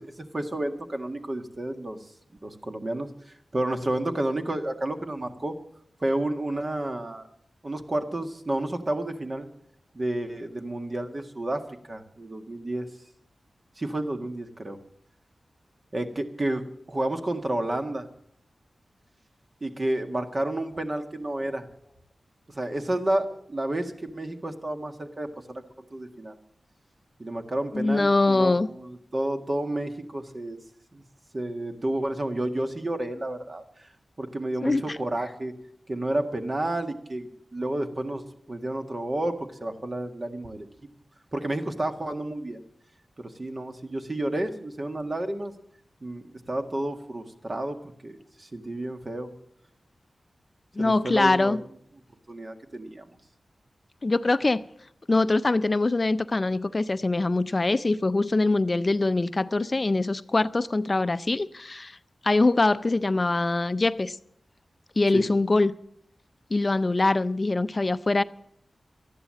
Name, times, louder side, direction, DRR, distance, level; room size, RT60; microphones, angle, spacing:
voice 1, 0.0-2.0 2.4-3.1 3.5-5.5 6.0-7.3 7.6-9.5 9.9-11.6 11.9-12.9 13.8-14.8 15.9-18.1 19.6-21.7 22.5-25.6 25.9-26.4 27.2-30.6 30.9-31.0 31.3-33.9 34.2-35.5 35.9-40.7 41.3-42.6 43.2-45.5 46.0-49.3 50.8-51.6 52.3-53.1 65.1-65.3, right 1 dB, 45° right, 1.7 m, -31 dB
voice 2, 27.7-28.7 34.6-35.0 50.8-51.6 54.0-54.6 55.1-62.0 62.2-64.2 65.0-65.7 66.5-68.2, left 2 dB, 40° left, 0.5 m, -23 dB
13.0 x 11.0 x 7.6 m
cardioid pair, 40°, 0 cm